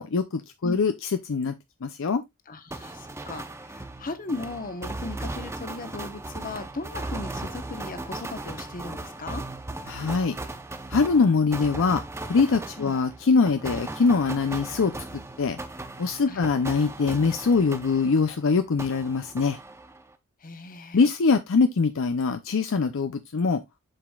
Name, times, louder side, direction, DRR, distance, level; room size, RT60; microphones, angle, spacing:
voice 1, 0.0-1.5 1.8-2.2 9.9-10.4 10.9-12.0 12.3-14.9 15.4-15.6 16.0-19.6 20.9-23.6, left 4 dB, 60° left, 0.5 m, -23 dB
voice 2, 2.5-9.4 12.8-12.9 16.3-16.4 20.4-21.1, left 3 dB, 40° left, 1.0 m, -37 dB
sound 1, 2.7-18.4 18.8-20.1, right 2 dB, 10° right, 0.7 m, -37 dB
7.7 x 6.1 x 2.3 m
head